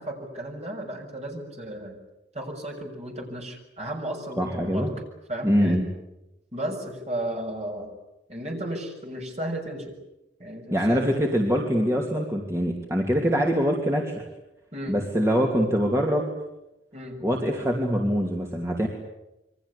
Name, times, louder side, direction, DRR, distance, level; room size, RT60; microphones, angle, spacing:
voice 1, 0.0-2.0 2.3-4.9 5.3-5.8 6.5-7.9 8.3-9.9 10.4-11.1 14.7-15.0 16.9-17.2, right 1 dB, 35° right, 2 dB, 6.7 m, -34 dB
voice 2, 4.4-4.9 5.4-5.8 10.7-14.1 14.9-16.3 17.2-18.9, equal, 15° right, 0 dB, 2.8 m, -24 dB
28.0 x 23.5 x 8.4 m, 0.93 s
head